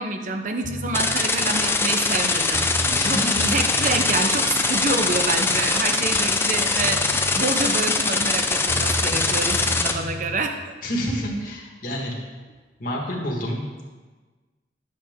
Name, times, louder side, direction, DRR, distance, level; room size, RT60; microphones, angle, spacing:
voice 1, 0.0-2.7 3.1-3.2 3.5-10.6, right 3 dB, 45° right, 5 dB, 0.7 m, -27 dB
sound 1, 0.6-1.2 2.2-2.3 2.5-4.2 6.4-6.5 6.8-7.4 8.7-10.4, equal, 85° left, 2.0 m, -32 dB
sound 2, 0.9-9.9, left 3 dB, 15° left, 0.5 m, -22 dB
voice 2, 2.8-3.5 10.8-12.1 12.8-13.8, equal, 50° left, -2 dB, 1.6 m, -28 dB
9.0 x 7.1 x 3.6 m, 1.3 s
head